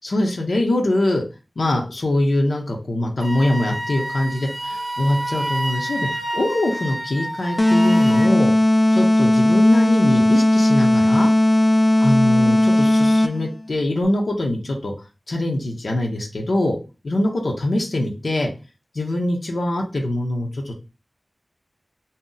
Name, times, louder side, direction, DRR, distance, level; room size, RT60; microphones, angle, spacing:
voice 1, 0.0-1.2 1.6-8.5 8.9-11.3 12.0-14.9 15.3-16.8 17.0-18.5 18.9-20.7, left 1 dB, 80° left, 0 dB, 0.6 m, -23 dB
Wind instrument woodwind instrument, 3.2-8.3, right 1 dB, 20° right, 0.6 m, -29 dB
sound 1, 7.6-13.5, left 1 dB, 40° left, 0.3 m, -16 dB
2.6 x 2.0 x 3.7 m, 0.31 s
wide cardioid pair, 60°, 0 cm